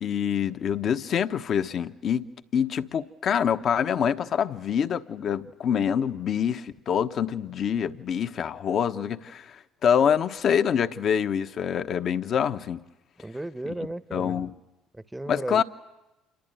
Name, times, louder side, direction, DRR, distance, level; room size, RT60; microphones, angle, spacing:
voice 1, 0.0-12.8 14.1-14.5 15.3-15.6, left 8 dB, 50° left, 1.1 m, -26 dB
voice 2, 13.2-14.5 14.9-15.6, right 1 dB, 10° right, 1.0 m, -35 dB
28.0 x 22.5 x 9.1 m
hypercardioid pair, 75°, 0 cm